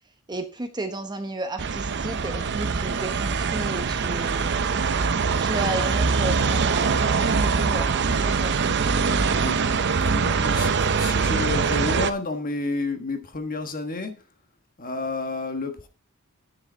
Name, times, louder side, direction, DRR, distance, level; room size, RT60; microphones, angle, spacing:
voice 1, 0.3-4.5 5.4-8.6, right 2 dB, 20° right, 0.9 m, -33 dB
sound 1, 1.6-12.1, right 5 dB, 50° right, 0.6 m, -23 dB
voice 2, 10.0-14.1 14.8-15.9, left 3 dB, 40° left, 1.4 m, -30 dB
9.9 x 6.8 x 4.5 m
head